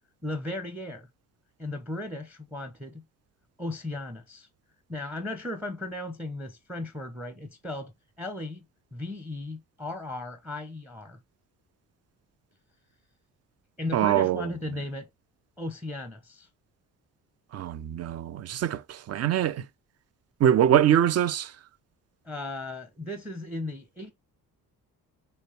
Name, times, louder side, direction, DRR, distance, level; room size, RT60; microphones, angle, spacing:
voice 1, 0.2-1.1 1.6-3.0 3.6-4.5 4.9-8.7 8.9-11.2 13.8-15.1 15.6-16.5 22.2-24.1, left 2 dB, 5° right, 0.9 m, -36 dB
voice 2, 13.9-14.5 17.5-19.6 20.4-21.5, right 10 dB, 35° right, 0.5 m, -23 dB
6.5 x 2.3 x 3.1 m
figure-of-eight pair, 45°, 47 cm